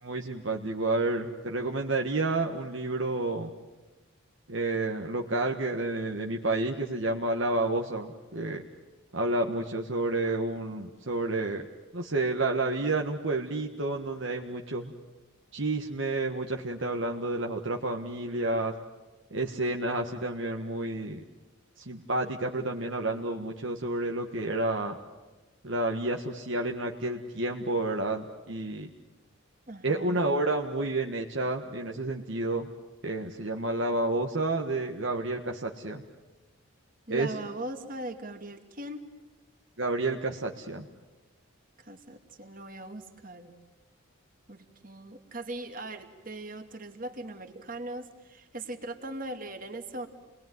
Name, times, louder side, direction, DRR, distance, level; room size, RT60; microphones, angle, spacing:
voice 1, 0.0-3.5 4.5-8.6 9.1-11.7 11.9-14.9 15.5-18.7 19.3-21.2 21.8-25.0 25.6-28.9 29.8-32.7 33.0-36.0 37.1-37.3 39.8-40.8, right 2 dB, 60° right, 2 dB, 1.6 m, -30 dB
voice 2, 29.7-30.2 37.1-39.1 41.8-43.6 44.5-50.1, right 2 dB, 40° right, 6 dB, 2.4 m, -40 dB
29.5 x 21.0 x 9.5 m, 1.2 s
head